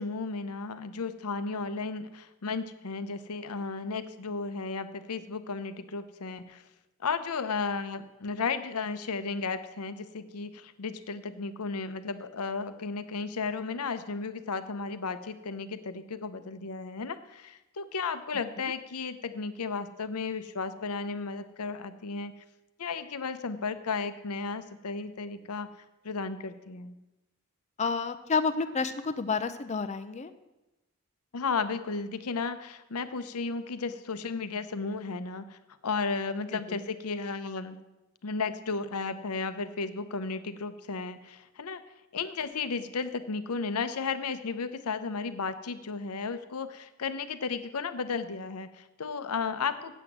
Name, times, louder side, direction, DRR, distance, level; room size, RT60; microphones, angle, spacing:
voice 1, 0.0-6.6 7.0-22.3 22.8-25.7 26.0-26.9 31.3-35.6 35.8-37.8 38.2-41.8 42.1-49.9, left 4 dB, 80° left, 11 dB, 0.7 m, -34 dB
voice 2, 27.8-30.3 36.7-36.8, left 4 dB, 30° left, 11 dB, 0.5 m, -30 dB
8.1 x 7.9 x 7.3 m, 1.0 s
head